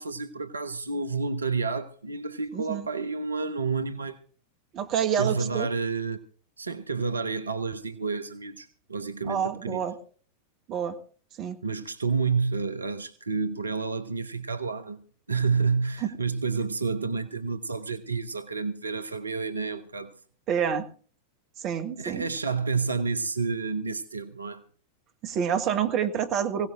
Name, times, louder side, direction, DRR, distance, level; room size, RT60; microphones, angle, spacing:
voice 1, 0.0-4.2 5.2-6.2 6.6-9.8 11.6-15.0 15.3-20.1 22.0-24.6, right 4 dB, 75° right, 0.7 m, -29 dB
voice 2, 2.5-2.9 4.7-5.7 9.3-9.9 10.7-11.0 11.4-11.6 16.0-16.1 20.5-20.8 21.6-22.3 25.2-26.7, right 8 dB, 35° right, 1.4 m, -27 dB
23.0 x 16.5 x 2.6 m
figure-of-eight pair, 90°, 0 cm